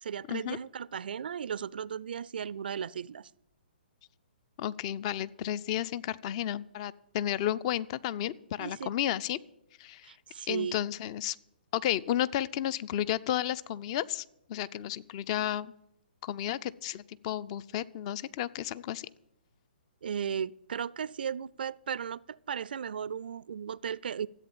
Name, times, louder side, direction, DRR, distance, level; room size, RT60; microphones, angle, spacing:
voice 1, 0.0-3.3 8.6-8.9 10.0-10.8 20.0-24.3, right 7 dB, 65° right, 0.4 m, -36 dB
voice 2, 4.6-9.4 9.8-10.1 10.5-11.4 11.7-15.7 16.2-19.1, left 11 dB, 35° left, 0.5 m, -32 dB
14.0 x 8.4 x 8.7 m
figure-of-eight pair, 130°, 6 cm